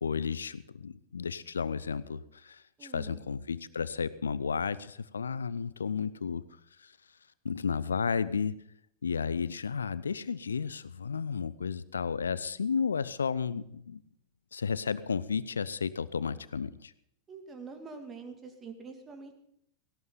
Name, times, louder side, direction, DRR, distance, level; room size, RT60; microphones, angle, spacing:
voice 1, 0.0-6.4 7.4-8.5 9.0-14.0 14.5-16.9, left 6 dB, 70° left, 18 dB, 0.7 m, -33 dB
voice 2, 2.8-3.2 17.3-19.3, right 4 dB, 20° right, 6 dB, 2.3 m, -45 dB
17.5 x 17.0 x 3.9 m, 0.74 s
figure-of-eight pair, 90°, 0 cm